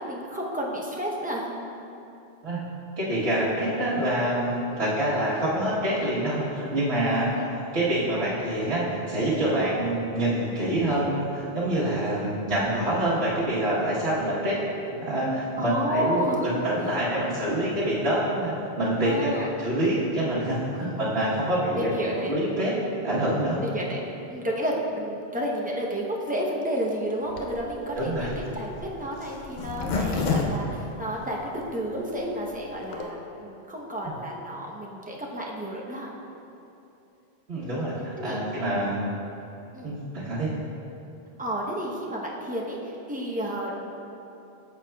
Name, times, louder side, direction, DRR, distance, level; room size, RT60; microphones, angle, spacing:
voice 1, 0.0-1.6 4.7-4.8 7.0-7.5 15.6-16.5 17.2-17.4 19.0-19.5 20.7-21.0 21.7-22.3 23.2-24.0 24.3-36.1 37.6-37.8 38.2-38.4 39.7-40.0 41.4-43.9, equal, 10° right, -3 dB, 0.6 m, -31 dB
voice 2, 3.0-14.6 14.8-19.3 19.6-21.9 22.2-22.8 23.0-23.6 28.0-28.3 34.0-34.1 37.5-39.1 39.8-40.5, right 1 dB, 80° right, -10 dB, 1.5 m, -26 dB
Zipper (clothing), 27.3-31.6 32.1-32.2 32.4-32.5 32.7-33.0, left 4 dB, 55° left, 0.7 m, -30 dB
8.8 x 6.8 x 2.2 m, 2.9 s
omnidirectional pair, 1.1 m